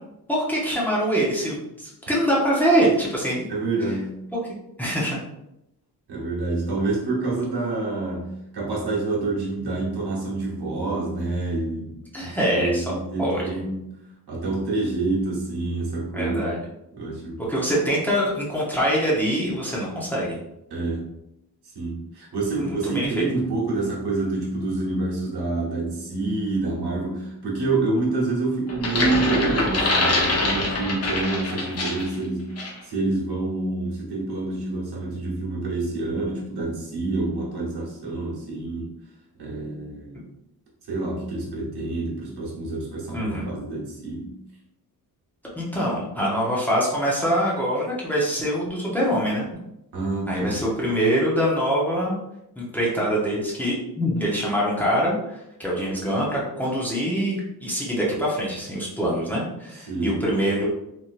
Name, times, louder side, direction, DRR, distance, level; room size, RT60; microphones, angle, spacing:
voice 1, 0.3-3.5 4.8-5.2 12.1-12.8 13.2-13.6 16.1-16.6 17.4-20.4 22.6-23.1 43.1-43.6 45.6-49.5 50.3-52.2 52.6-60.7, equal, 5° left, -6 dB, 0.8 m, -24 dB
voice 2, 3.5-4.2 6.1-13.9 14.3-16.5 16.9-17.4 20.7-21.1 21.7-38.9 39.3-40.2 40.9-44.3 49.9-50.6 59.9-60.2, right 3 dB, 90° right, -4 dB, 1.2 m, -27 dB
sound 1, 28.7-32.1 32.6-32.8, left 2 dB, 40° left, 0.7 m, -24 dB
3.4 x 2.9 x 2.5 m, 0.85 s
wide cardioid pair, 150°, 38 cm